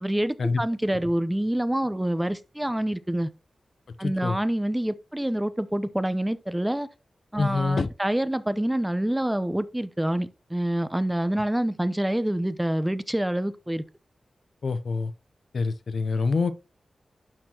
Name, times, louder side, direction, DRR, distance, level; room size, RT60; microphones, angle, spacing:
voice 1, 0.0-3.3 4.0-6.9 7.3-13.8, right 1 dB, 10° right, 0.6 m, -27 dB
voice 2, 4.0-4.4 7.4-7.9 14.6-15.1 15.5-16.5, left 4 dB, 70° left, 0.5 m, -26 dB
12.0 x 4.3 x 2.9 m
cardioid pair, 55°, 0 cm